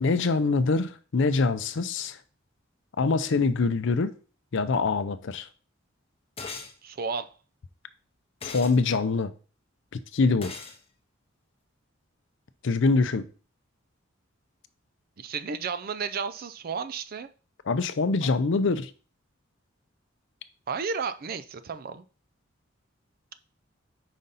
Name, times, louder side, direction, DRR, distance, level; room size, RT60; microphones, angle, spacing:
voice 1, 0.0-2.2 3.0-4.1 4.5-5.5 8.4-9.3 9.9-10.5 12.6-13.2 17.7-18.9, left 3 dB, 65° left, 0.5 m, -24 dB
sound 1, 6.4-6.7 8.4-8.8 10.4-10.8, left 4 dB, 30° left, 0.8 m, -38 dB
voice 2, 6.8-7.3 15.2-17.3 18.2-18.3 20.7-22.0, right 5 dB, 45° right, 0.4 m, -33 dB
5.1 x 3.9 x 5.5 m
head